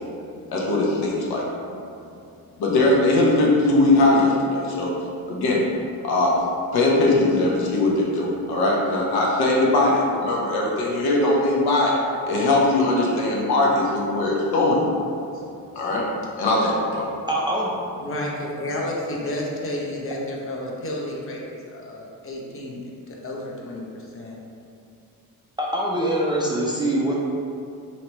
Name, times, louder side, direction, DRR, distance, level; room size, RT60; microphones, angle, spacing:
voice 1, 0.5-1.4 2.6-4.9 5.3-5.6 6.0-6.4 6.7-11.9 12.3-14.8 15.7-16.0 16.4-17.1, left 2 dB, 80° left, -3 dB, 0.9 m, -20 dB
voice 2, 17.3-17.7 25.6-27.2, right 1 dB, 15° right, -4 dB, 0.3 m, -23 dB
voice 3, 18.0-22.8 23.1-24.4, left 1 dB, 35° left, -3 dB, 0.8 m, -31 dB
3.0 x 2.9 x 4.4 m, 2.5 s
cardioid pair, 120°, 37 cm